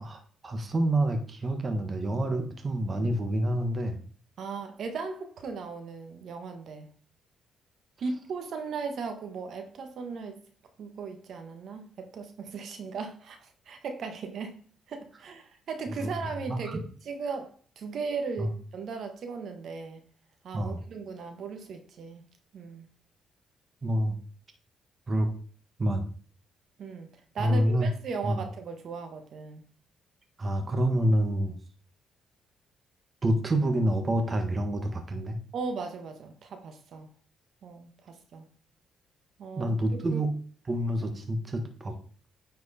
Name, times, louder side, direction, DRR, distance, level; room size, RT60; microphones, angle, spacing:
voice 1, 0.0-4.0 15.9-16.1 16.5-16.8 18.4-18.5 20.5-20.8 23.8-24.2 25.1-25.3 25.8-26.0 27.4-27.9 28.2-28.4 30.4-31.5 33.2-35.4 39.6-40.3 40.7-41.9, right 1 dB, 35° right, 6 dB, 1.4 m, -27 dB
voice 2, 4.4-6.9 8.0-10.4 10.8-14.5 14.9-20.0 20.4-22.2 22.5-22.9 26.8-27.1 27.3-29.6 35.5-37.1 37.6-38.4 39.4-39.7 40.1-40.2, right 4 dB, 65° right, 6 dB, 1.5 m, -37 dB
9.7 x 4.6 x 4.3 m, 0.44 s
cardioid pair, 90°, 0 cm